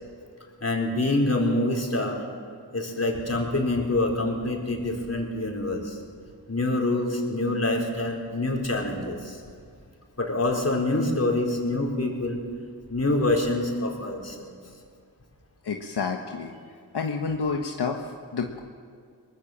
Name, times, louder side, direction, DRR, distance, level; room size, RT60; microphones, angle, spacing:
voice 1, 0.6-2.2 2.7-6.0 6.5-9.4 10.2-12.4 12.9-14.5, left 2 dB, 40° left, 0 dB, 4.6 m, -26 dB
voice 2, 15.6-16.5 16.9-18.6, left 5 dB, 80° left, 2 dB, 1.4 m, -29 dB
23.5 x 19.0 x 7.5 m, 2.2 s
cardioid pair, 60°, 40 cm